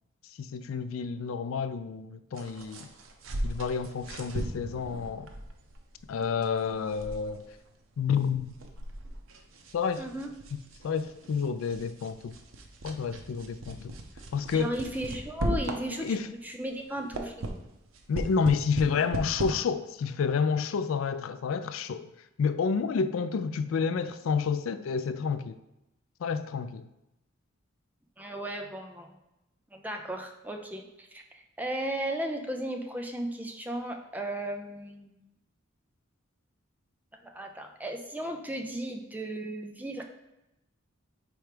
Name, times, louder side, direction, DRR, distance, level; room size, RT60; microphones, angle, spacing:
voice 1, 0.4-2.9 3.4-5.3 6.1-7.5 8.0-8.6 9.7-10.0 10.8-12.4 12.8-13.9 14.3-14.7 15.5-16.3 18.1-22.1 22.4-25.6 26.2-26.8, left 5 dB, 80° left, 0.4 m, -29 dB
sound 1, 2.3-16.3 16.7-19.5, right 1 dB, 75° right, 0.7 m, -38 dB
voice 2, 10.0-10.3 14.5-17.4 28.2-29.1 29.7-35.2 37.1-40.0, right 1 dB, 10° right, 0.5 m, -35 dB
4.5 x 4.5 x 5.1 m
head